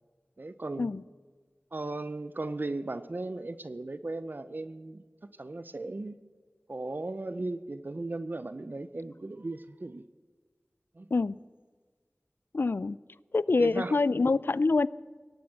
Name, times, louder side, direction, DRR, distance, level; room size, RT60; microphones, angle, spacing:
voice 1, 0.4-0.9 1.7-5.0 5.4-6.2 6.7-10.0 11.0-11.1 13.6-14.0, right 2 dB, 50° right, 13 dB, 0.6 m, -36 dB
voice 2, 12.5-13.0 13.3-14.9, left 3 dB, 60° left, 20 dB, 0.3 m, -25 dB
17.5 x 8.5 x 7.6 m, 1.5 s
wide cardioid pair, 55°, 4 cm